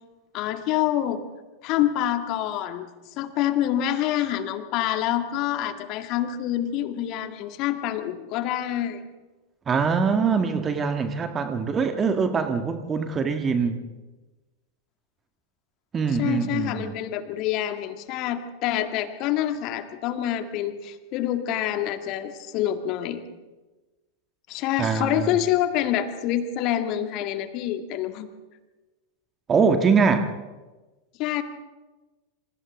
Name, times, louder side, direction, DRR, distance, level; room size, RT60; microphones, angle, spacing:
voice 1, 0.3-1.2 1.6-2.9 3.2-9.0 16.2-23.2 24.5-28.3 31.2-31.4, left 11 dB, 40° left, 8 dB, 2.0 m, -26 dB
voice 2, 9.7-13.8 15.9-16.9 24.8-25.3 29.5-30.3, right 5 dB, 20° right, 7 dB, 1.7 m, -23 dB
27.5 x 27.5 x 3.6 m, 1.2 s
figure-of-eight pair, 90°, 0 cm